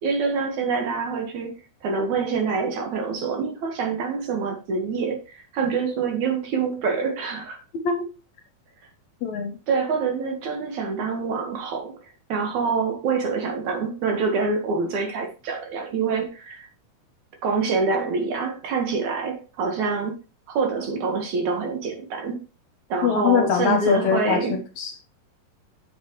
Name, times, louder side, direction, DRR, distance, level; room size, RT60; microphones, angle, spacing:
voice 1, 0.0-7.6 9.7-12.0 12.3-16.7 17.4-20.2 20.5-22.4 22.9-24.6, right 4 dB, 65° right, 2.6 m, -26 dB
voice 2, 9.2-9.6 23.0-24.9, left 7 dB, 70° left, 1.9 m, -23 dB
7.8 x 7.2 x 3.0 m
omnidirectional pair, 3.9 m